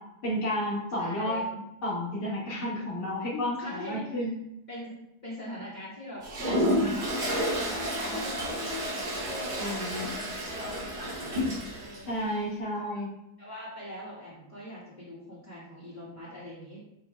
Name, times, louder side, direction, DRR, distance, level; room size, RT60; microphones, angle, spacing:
voice 1, 0.2-1.4 1.8-4.3 9.6-10.1 12.1-13.1, equal, 75° left, -9 dB, 2.9 m, -31 dB
voice 2, 1.0-1.4 3.6-4.3 4.7-7.1 7.6-8.8 9.3-11.2 11.7-12.1 12.8-12.9 13.4-16.8, equal, 25° left, -7 dB, 2.1 m, -42 dB
Toilet flush, 6.2-12.0, equal, 70° right, 2.5 m, -30 dB
8.5 x 5.8 x 2.3 m, 0.83 s
omnidirectional pair, 1.8 m